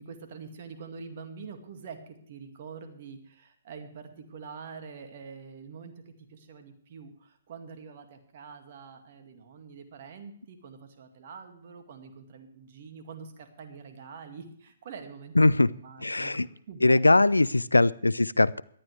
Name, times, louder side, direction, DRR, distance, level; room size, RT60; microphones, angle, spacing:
voice 1, 0.0-15.3 15.6-17.3, right 5 dB, 50° right, 6 dB, 2.1 m, -45 dB
voice 2, 15.4-15.7 16.0-16.5 16.8-18.6, left 2 dB, 85° left, 21 dB, 0.4 m, -21 dB
18.5 x 12.0 x 3.3 m, 0.63 s
figure-of-eight pair, 125°, 0 cm